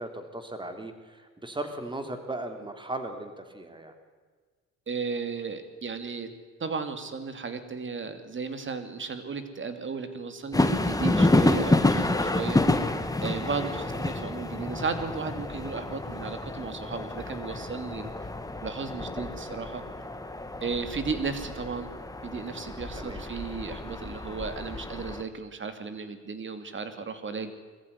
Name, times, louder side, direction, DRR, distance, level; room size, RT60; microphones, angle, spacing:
voice 1, 0.0-3.9 13.4-13.8 22.9-23.2, right 2 dB, 15° right, 7 dB, 3.2 m, -37 dB
voice 2, 4.9-6.3 6.6-12.8 13.2-18.1 18.6-19.8 20.6-21.9 22.2-27.5, right 5 dB, 40° right, 9 dB, 2.8 m, -34 dB
sound 1, 10.5-25.2, left 2 dB, 10° left, 1.9 m, -29 dB
21.5 x 15.0 x 9.9 m, 1.5 s
cardioid pair, 90°, 30 cm